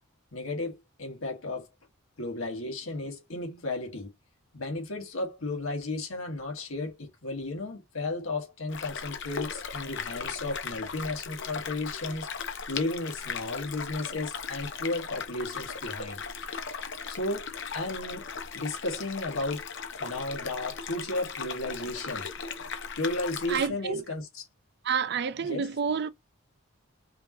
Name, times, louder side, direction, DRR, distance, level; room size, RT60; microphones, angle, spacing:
voice 1, 0.3-1.7 2.2-4.1 4.5-16.2 16.7-17.5 17.7-18.2 18.5-19.7 20.0-22.3 22.6-22.7 23.0-24.4 25.5-25.7, left 2 dB, 75° left, 1.7 m, -34 dB
sound 1, 8.7-23.7, left 6 dB, 60° left, 0.8 m, -38 dB
voice 2, 23.5-24.0 24.8-26.1, right 6 dB, 50° right, 0.5 m, -29 dB
5.0 x 2.8 x 3.0 m
head